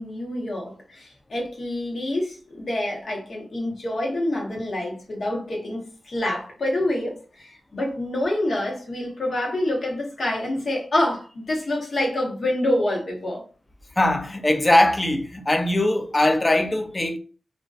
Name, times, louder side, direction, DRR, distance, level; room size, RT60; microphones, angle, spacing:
voice 1, 0.0-5.8 6.0-13.4, left 1 dB, 65° left, 0.8 m, -27 dB
voice 2, 14.0-17.2, left 1 dB, 25° left, 0.4 m, -20 dB
2.4 x 2.1 x 2.3 m
cardioid pair, 55°, 0 cm